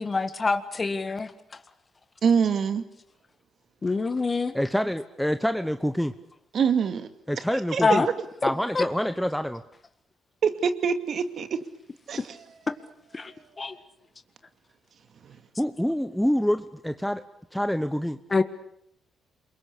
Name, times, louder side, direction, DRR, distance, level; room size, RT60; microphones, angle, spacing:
voice 1, 0.0-1.3 3.8-4.5 7.8-8.1 8.7-8.8 12.7-12.8 13.1-13.7 18.3-18.4, left 3 dB, 30° left, 1.8 m, -25 dB
voice 2, 2.2-2.9 6.5-8.0 10.4-11.6 12.1-12.4 13.2-13.4 15.2-15.4, right 6 dB, 55° right, 2.4 m, -26 dB
voice 3, 4.5-6.1 7.3-8.0 8.4-9.6 15.6-17.2 17.5-18.2, equal, ahead, 1.1 m, -26 dB
28.5 x 22.5 x 8.5 m
cardioid pair, 90°, 0 cm